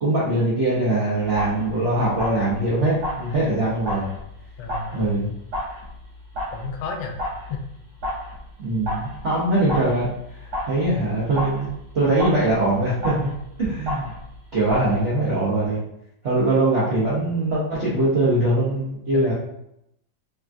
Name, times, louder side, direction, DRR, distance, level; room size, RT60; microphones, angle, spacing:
voice 1, 0.0-4.0 4.9-5.3 8.6-10.1 10.6-11.7 11.9-13.3 13.7-14.1 14.5-15.8 16.2-19.3, right 2 dB, 70° right, -8 dB, 0.6 m, -22 dB
sound 1, 1.2-7.7 8.0-14.4 14.7-15.0, left 1 dB, 50° right, 1.1 m, -33 dB
voice 2, 4.6-5.0 6.5-7.2 7.5-7.6 15.0-15.2 19.1-19.3, left 4 dB, 85° left, 3 dB, 1.3 m, -32 dB
3.4 x 2.3 x 2.5 m, 0.79 s
omnidirectional pair, 2.1 m